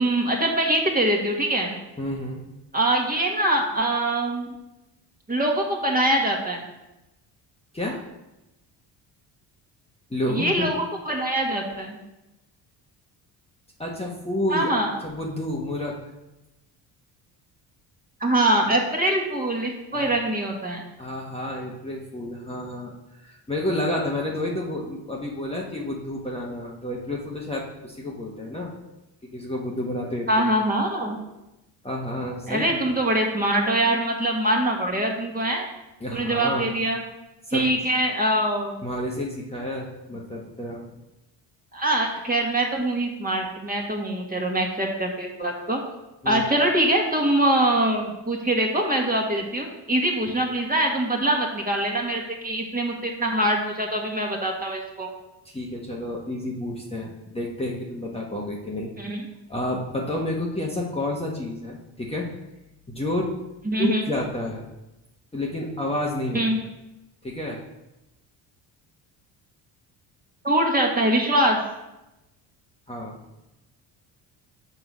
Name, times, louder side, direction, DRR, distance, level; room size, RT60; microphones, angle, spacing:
voice 1, 0.0-1.8 2.7-4.6 5.3-6.6 10.3-12.0 14.5-14.9 18.2-20.8 30.3-31.2 32.5-35.7 36.1-37.0 37.5-38.8 41.7-45.8 46.3-55.1 59.0-59.2 63.7-64.0 66.3-66.6 70.4-71.6, right 1 dB, 20° right, 0 dB, 1.7 m, -23 dB
voice 2, 2.0-2.4 7.7-8.0 10.1-10.7 13.8-14.7 15.0-16.0 19.9-20.2 21.0-22.9 23.2-28.7 29.2-30.5 31.8-32.9 36.0-36.7 37.5-37.7 38.8-40.8 46.2-46.5 55.4-58.9 59.5-62.3 62.9-63.3 63.8-64.7 65.3-66.4 67.2-67.6 72.9-73.1, left 1 dB, 15° left, -3 dB, 1.3 m, -30 dB
6.2 x 3.9 x 6.1 m, 0.95 s
supercardioid pair, 70°, 46 cm